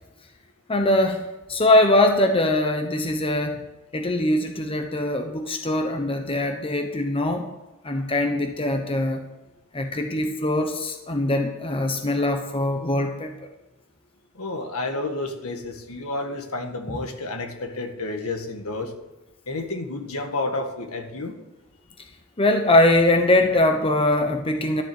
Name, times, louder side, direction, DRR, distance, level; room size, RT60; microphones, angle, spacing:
voice 1, 0.7-1.2 1.5-3.6 3.9-7.5 7.8-9.2 9.7-13.3 16.9-17.0 22.4-24.8, left 1 dB, 25° left, 5 dB, 1.0 m, -22 dB
voice 2, 14.4-18.9 19.5-21.3, left 2 dB, 70° left, 4 dB, 1.9 m, -30 dB
13.0 x 7.6 x 7.9 m, 1.0 s
head